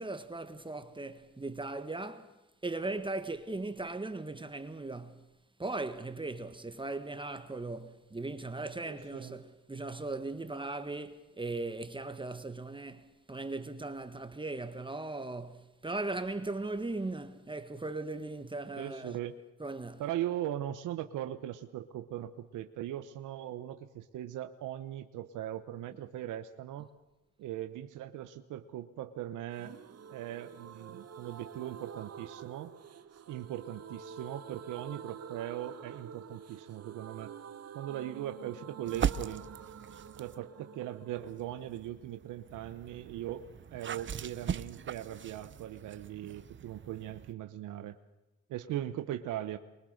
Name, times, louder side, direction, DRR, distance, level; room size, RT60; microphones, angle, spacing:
voice 1, 0.0-2.3 2.6-5.2 5.6-19.2 19.6-20.0, right 2 dB, 15° right, 1.6 m, -38 dB
voice 2, 8.9-9.3 18.8-19.3 20.0-26.9 27.4-29.7 30.1-32.7 33.3-37.3 37.7-39.5 40.2-48.0 48.5-49.6, right 12 dB, 85° right, 1.1 m, -39 dB
sound 1, 29.5-43.2 43.4-43.5 43.8-43.9, right 7 dB, 55° right, 1.6 m, -49 dB
sound 2, 38.9-40.4 41.1-47.3, right 8 dB, 40° right, 0.8 m, -39 dB
24.5 x 23.0 x 6.6 m
cardioid pair, 90°, 30 cm